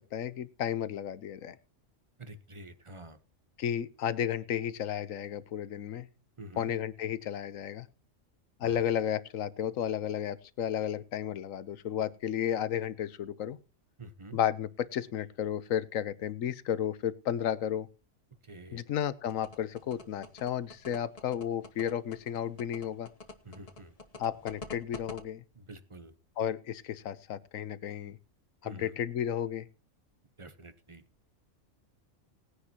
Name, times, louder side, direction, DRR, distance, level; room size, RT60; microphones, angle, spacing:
voice 1, 0.0-1.6 3.6-6.1 6.6-7.9 8.6-13.6 14.3-17.9 18.7-23.1 24.2-25.4 26.4-28.2 28.6-29.7, left 9 dB, 80° left, 16 dB, 1.2 m, -33 dB
voice 2, 2.2-3.2 6.4-6.7 8.6-8.8 14.0-14.4 18.4-18.8 23.4-23.9 25.5-26.1 28.6-29.0 30.4-31.0, right 2 dB, 25° right, 11 dB, 1.0 m, -48 dB
sound 1, 19.3-25.2, left 3 dB, 30° left, 1.1 m, -45 dB
19.5 x 9.8 x 2.9 m, 0.30 s
omnidirectional pair, 1.4 m